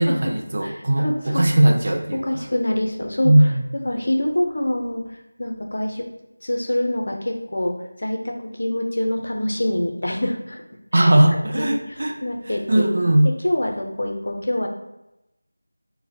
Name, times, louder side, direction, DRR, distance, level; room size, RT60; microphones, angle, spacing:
voice 1, 0.0-2.4 3.2-3.6 10.9-12.2 12.5-13.3, right 1 dB, 45° right, 4 dB, 0.5 m, -18 dB
voice 2, 0.6-1.4 2.1-3.3 3.7-5.0 5.4-6.1 6.4-10.6 10.9-11.1 11.4-11.8 12.2-12.9 13.2-14.7, left 1 dB, 55° left, 2 dB, 0.7 m, -25 dB
6.2 x 2.2 x 2.8 m, 0.91 s
figure-of-eight pair, 170°, 0 cm